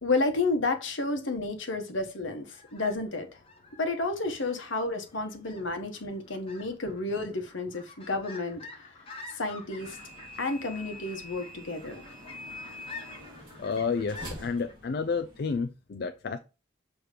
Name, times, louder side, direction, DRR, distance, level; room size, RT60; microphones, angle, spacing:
voice 1, 0.0-3.4 3.8-8.9 9.3-10.0 10.4-12.0, left 3 dB, 70° left, 1.1 m, -31 dB
sound 1, 2.4-14.7, left 3 dB, 25° left, 1.3 m, -49 dB
sound 2, 9.8-15.6, left 1 dB, 20° right, 2.0 m, -45 dB
voice 2, 13.6-16.4, left 5 dB, 50° left, 0.4 m, -30 dB
6.6 x 3.0 x 4.9 m
head